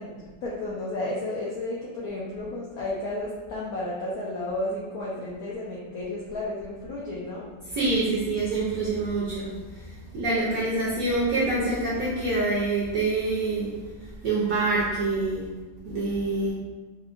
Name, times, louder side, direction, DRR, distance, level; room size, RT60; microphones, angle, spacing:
voice 1, 0.0-7.5, left 2 dB, 80° left, -6 dB, 0.8 m, -32 dB
voice 2, 7.7-9.5 10.1-13.7 14.2-15.4 15.8-16.5, right 2 dB, 65° right, -7 dB, 0.8 m, -25 dB
4.4 x 2.1 x 2.4 m, 1.2 s
omnidirectional pair, 2.1 m